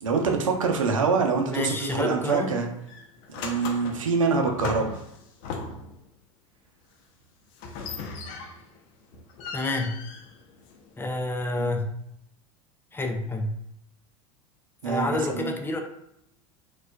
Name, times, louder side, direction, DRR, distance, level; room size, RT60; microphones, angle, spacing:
voice 1, 0.0-2.7 3.3-5.0 11.5-11.7 14.8-15.5, right 5 dB, 85° right, 3 dB, 0.6 m, -25 dB
voice 2, 1.5-2.6 9.5-10.0 11.0-11.9 12.9-13.5 14.8-15.8, left 2 dB, 15° left, 4 dB, 0.5 m, -28 dB
sound 1, 2.3-2.5 2.9-6.0 7.6-8.8 9.1-11.0, left 4 dB, 55° left, 0.6 m, -38 dB
4.2 x 2.4 x 2.2 m, 0.77 s
hypercardioid pair, 85°, 17 cm